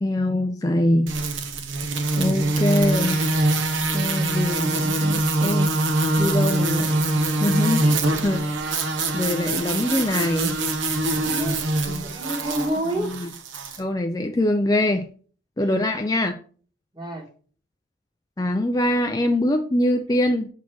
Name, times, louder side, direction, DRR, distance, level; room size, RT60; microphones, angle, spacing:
voice 1, 0.0-1.1 2.1-3.2 3.9-5.8 6.2-7.0 7.4-7.9 8.2-8.5 9.1-10.6 11.9-12.1 13.0-13.3 13.8-15.1 15.6-16.3 18.4-20.5, left 1 dB, 20° left, 5 dB, 0.4 m, -23 dB
sound 1, 1.1-13.8, right 2 dB, 70° right, 1.0 m, -23 dB
voice 2, 11.1-11.6 12.0-13.2 15.7-15.9 16.9-17.3, right 1 dB, 20° right, 2 dB, 1.5 m, -29 dB
7.2 x 4.2 x 4.6 m, 0.43 s
head